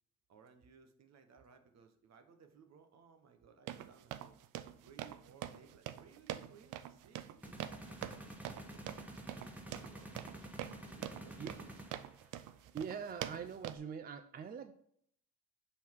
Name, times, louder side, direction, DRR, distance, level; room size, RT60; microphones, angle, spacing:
voice 1, 0.3-4.4 4.8-10.5 10.8-11.8, right 6 dB, 60° right, 6 dB, 1.1 m, -62 dB
sound 1, 3.7-13.8, right 12 dB, 85° right, 0.5 m, -45 dB
sound 2, 7.4-12.3, right 1 dB, 5° right, 1.1 m, -50 dB
voice 2, 12.7-14.7, right 6 dB, 30° right, 10 dB, 0.4 m, -43 dB
5.6 x 4.3 x 4.6 m, 0.67 s
cardioid pair, 90°, 30 cm